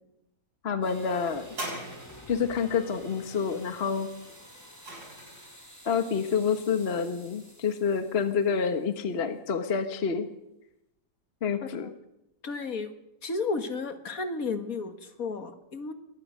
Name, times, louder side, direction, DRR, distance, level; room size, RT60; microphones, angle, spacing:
voice 1, 0.6-1.4 2.3-4.1 5.8-10.3 11.4-11.9, left 6 dB, 40° left, 8 dB, 1.4 m, -28 dB
sound 1, 0.8-9.1, equal, 10° left, 5.7 m, -50 dB
sound 2, 1.5-2.5 4.2-5.6 6.4-6.5, right 1 dB, 70° right, 7.4 m, -40 dB
voice 2, 11.6-11.9 12.4-12.9 13.2-15.9, left 4 dB, 60° left, 8 dB, 2.1 m, -33 dB
22.5 x 19.5 x 6.5 m, 0.86 s
omnidirectional pair, 1.8 m